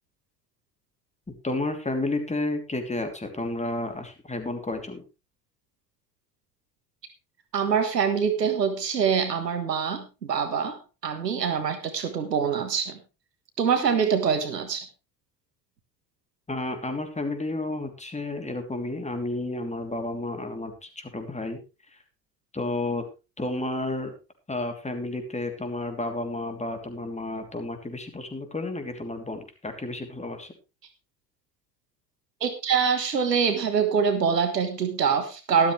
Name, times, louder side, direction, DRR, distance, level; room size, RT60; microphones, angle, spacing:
voice 1, 1.4-5.0 16.5-21.6 21.9-22.0 22.5-23.0 23.4-24.1 24.5-30.5, left 2 dB, 15° left, 6 dB, 3.1 m, -31 dB
voice 2, 7.5-13.0 13.6-14.9 32.4-35.7, right 6 dB, 90° right, 9 dB, 1.5 m, -25 dB
13.0 x 12.5 x 3.3 m, 0.29 s
figure-of-eight pair, 60°, 48 cm